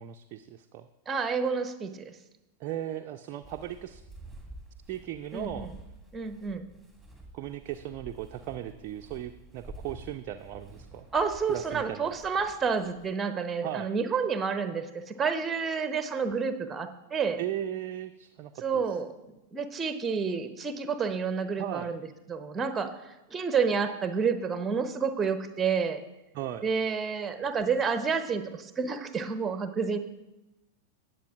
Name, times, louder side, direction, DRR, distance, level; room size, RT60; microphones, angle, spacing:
voice 1, 0.0-0.9 2.6-4.0 4.9-5.7 7.3-11.1 11.5-12.2 13.6-13.9 17.4-18.8 21.6-21.9 26.3-26.6, right 11 dB, 40° right, 5 dB, 0.4 m, -37 dB
voice 2, 1.1-2.1 5.3-5.7 6.1-6.6 11.1-17.4 18.6-19.1 19.5-22.0 22.3-26.0 26.6-30.0, right 5 dB, 15° right, 10 dB, 0.8 m, -29 dB
Walk footsteps, 3.4-13.1, right 2 dB, ahead, 2.1 m, -49 dB
18.5 x 7.5 x 2.4 m, 0.97 s
figure-of-eight pair, 90°, 0 cm